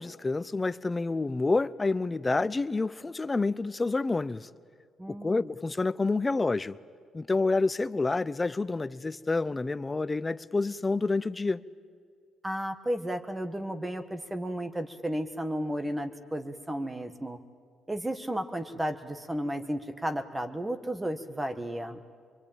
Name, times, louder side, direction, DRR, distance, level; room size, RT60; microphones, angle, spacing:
voice 1, 0.0-4.5 5.1-6.8 7.1-11.6, left 3 dB, 20° left, 0.7 m, -28 dB
voice 2, 5.0-5.5 12.4-17.4 17.9-22.0, equal, 15° right, 1.4 m, -33 dB
24.5 x 23.5 x 8.9 m
cardioid pair, 90°, 0 cm